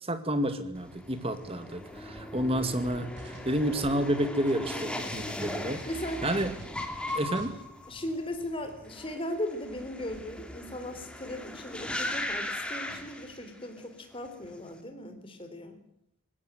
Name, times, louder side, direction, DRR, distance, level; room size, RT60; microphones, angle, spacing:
voice 1, 0.0-5.8 6.2-6.5 7.1-7.5, right 1 dB, 25° right, 10 dB, 2.2 m, -30 dB
sound 1, 0.7-13.8 14.1-14.7, left 1 dB, 5° left, 2.5 m, -38 dB
sound 2, 3.0-4.8 5.1-7.5, equal, 55° right, 6.0 m, -47 dB
voice 2, 4.7-5.1 5.9-6.2 7.9-15.8, left 1 dB, 25° left, 6 dB, 3.7 m, -38 dB
20.0 x 16.0 x 9.1 m, 0.74 s
head